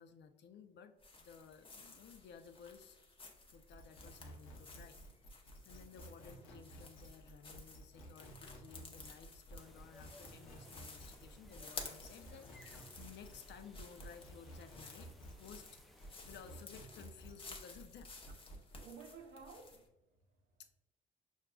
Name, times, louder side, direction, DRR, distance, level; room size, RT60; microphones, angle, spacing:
voice 1, 0.0-3.0 3.5-5.0 5.3-15.7 16.3-18.1 20.6-20.7, left 7 dB, 60° left, 0.5 m, -56 dB
sound 1, 1.0-19.9, left 3 dB, 25° left, 0.7 m, -55 dB
sound 2, 3.5-15.7 16.0-18.9, right 1 dB, 85° left, 0.8 m, -54 dB
sound 3, 9.6-16.7, equal, ahead, 0.4 m, -63 dB
voice 2, 18.5-20.6, right 5 dB, 75° right, 0.7 m, -55 dB
6.2 x 2.4 x 2.2 m
cardioid pair, 90°, 20 cm